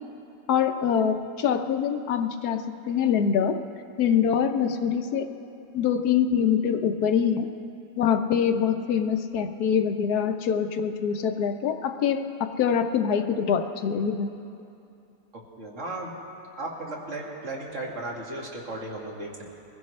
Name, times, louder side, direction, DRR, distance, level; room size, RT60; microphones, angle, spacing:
voice 1, 0.5-3.6 4.0-5.3 5.7-7.5 8.0-14.3, left 7 dB, 70° left, 7 dB, 1.2 m, -24 dB
voice 2, 15.6-16.1 16.6-19.4, right 2 dB, 45° right, -2 dB, 2.2 m, -35 dB
22.5 x 15.5 x 3.2 m, 2.7 s
omnidirectional pair, 1.8 m